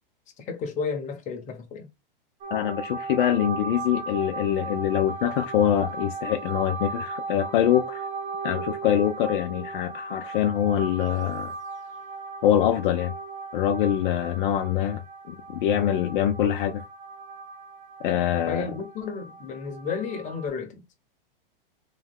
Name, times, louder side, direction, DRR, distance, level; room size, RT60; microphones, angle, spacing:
voice 1, 0.4-1.9 18.5-20.8, left 5 dB, 25° left, 1.2 m, -32 dB
sound 1, 2.4-20.5, right 3 dB, 25° right, 1.0 m, -37 dB
voice 2, 2.5-8.1 8.4-11.5 12.4-13.1 13.5-15.0 15.3-16.8 18.0-18.7, left 10 dB, 60° left, 0.7 m, -24 dB
3.5 x 3.3 x 3.6 m
hypercardioid pair, 130°, 29 cm